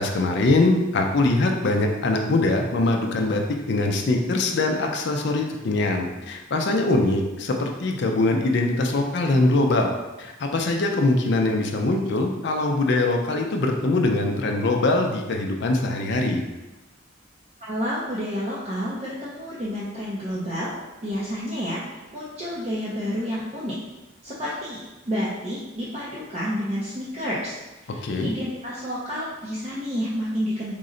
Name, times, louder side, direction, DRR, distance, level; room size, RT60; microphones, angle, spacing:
voice 1, 0.0-3.4 3.7-9.9 10.2-16.4 27.9-28.3, left 2 dB, 55° left, 2 dB, 0.4 m, -22 dB
voice 2, 17.6-20.7 21.0-21.8 22.1-23.8 24.2-24.8 25.1-27.6 27.8-30.7, equal, 30° right, -7 dB, 0.5 m, -29 dB
3.8 x 2.1 x 3.7 m, 1.1 s
head